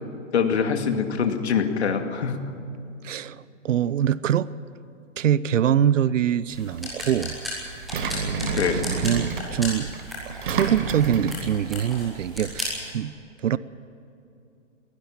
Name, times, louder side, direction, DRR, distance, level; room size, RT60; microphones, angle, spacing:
voice 1, 0.3-2.5 8.4-8.9, left 6 dB, 60° left, 5 dB, 2.4 m, -24 dB
voice 2, 3.0-4.5 5.2-7.4 8.7-9.9 10.3-13.1 13.4-13.6, right 9 dB, 80° right, 18 dB, 0.8 m, -24 dB
sound 1, 6.5-12.9, left 1 dB, ahead, 0.5 m, -36 dB
Engine, 6.5-12.6, right 5 dB, 40° right, 1.8 m, -31 dB
22.5 x 16.5 x 7.3 m, 2.7 s
hypercardioid pair, 175°, 38 cm